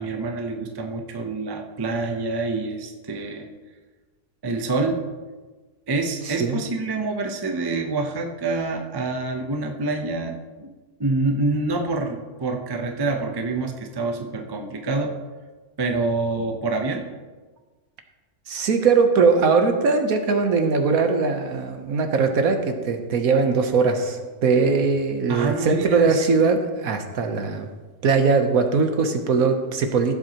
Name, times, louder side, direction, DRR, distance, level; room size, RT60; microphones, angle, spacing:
voice 1, 0.0-3.5 4.4-5.1 5.9-10.7 11.0-15.1 15.8-17.1 25.3-26.2, right 3 dB, 30° right, 4 dB, 0.4 m, -26 dB
voice 2, 6.3-6.6 18.5-27.7 28.0-30.2, right 4 dB, 60° right, 5 dB, 1.3 m, -20 dB
15.5 x 7.8 x 3.0 m, 1.3 s
omnidirectional pair, 1.7 m